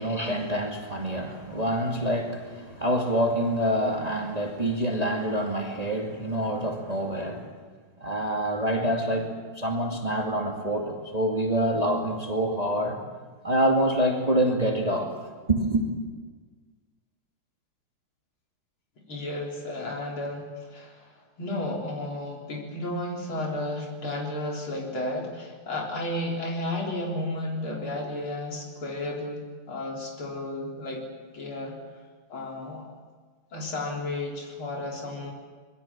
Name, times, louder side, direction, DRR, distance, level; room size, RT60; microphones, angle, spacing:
voice 1, 0.0-7.5 8.0-13.0 13.4-15.2 15.5-15.9, right 1 dB, 20° right, 0 dB, 2.5 m, -26 dB
voice 2, 19.1-31.1 31.3-31.8 32.3-32.9 33.5-35.3, left 1 dB, 85° left, -1 dB, 4.6 m, -33 dB
25.5 x 22.0 x 7.4 m, 1.5 s
omnidirectional pair, 2.2 m